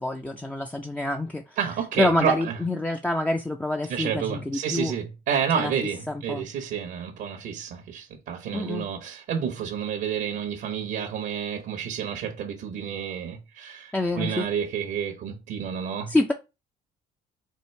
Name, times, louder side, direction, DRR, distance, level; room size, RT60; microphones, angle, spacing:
voice 1, 0.0-1.4 2.0-4.9 5.6-5.7 6.1-6.4 8.5-8.9 13.9-14.5 16.1-16.3, left 1 dB, 10° left, 0.4 m, -26 dB
voice 2, 1.6-2.6 3.9-16.1, right 8 dB, 75° right, 0.9 m, -30 dB
4.5 x 2.5 x 4.4 m
cardioid pair, 110°, 17 cm